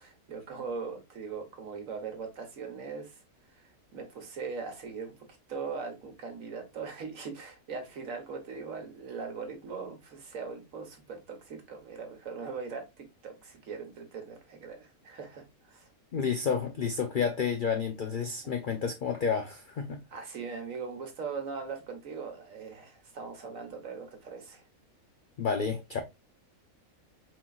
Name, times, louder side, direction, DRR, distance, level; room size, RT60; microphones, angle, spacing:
voice 1, 0.0-3.2 3.5-5.1 5.5-15.9 20.1-24.6, right 5 dB, 65° right, 1.5 m, -40 dB
voice 2, 16.1-20.0 25.4-26.0, left 6 dB, 80° left, 0.4 m, -30 dB
4.6 x 3.8 x 2.3 m
omnidirectional pair, 1.6 m